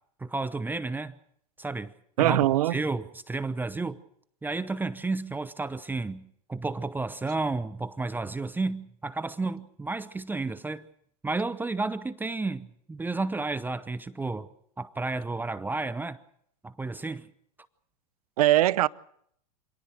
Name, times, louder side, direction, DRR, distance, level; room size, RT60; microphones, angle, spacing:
voice 1, 0.2-1.2 1.6-1.9 2.2-2.4 2.7-4.0 4.4-10.9 11.2-14.5 14.8-16.2 16.6-17.3, right 3 dB, 10° right, 0.8 m, -32 dB
voice 2, 2.2-2.8 18.4-18.9, right 15 dB, 70° right, 0.8 m, -21 dB
26.5 x 18.5 x 6.3 m
hypercardioid pair, 110°, 20 cm